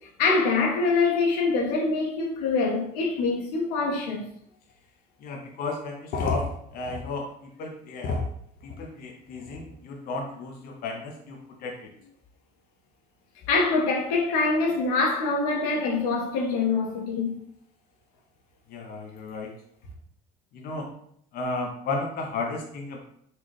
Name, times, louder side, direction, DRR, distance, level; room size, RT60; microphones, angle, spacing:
voice 1, 0.2-4.3 13.5-17.4, left 3 dB, 85° left, 1.0 m, -24 dB
voice 2, 5.2-8.3 8.6-11.9 18.7-19.5 20.5-20.9 21.3-23.0, left 3 dB, 50° left, 0.7 m, -33 dB
4.1 x 2.3 x 3.2 m
supercardioid pair, 90°, 19 cm